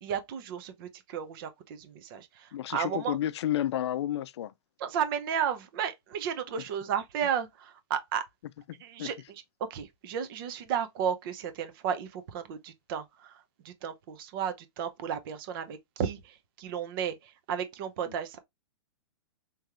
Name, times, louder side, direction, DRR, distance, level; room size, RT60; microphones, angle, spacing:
voice 1, 0.0-3.2 4.8-8.2 8.8-9.4 9.7-18.4, right 8 dB, 50° right, 0.8 m, -33 dB
voice 2, 2.5-4.5 9.0-9.1 18.1-18.2, left 12 dB, 70° left, 0.4 m, -31 dB
3.6 x 3.1 x 3.0 m
hypercardioid pair, 130°, 15 cm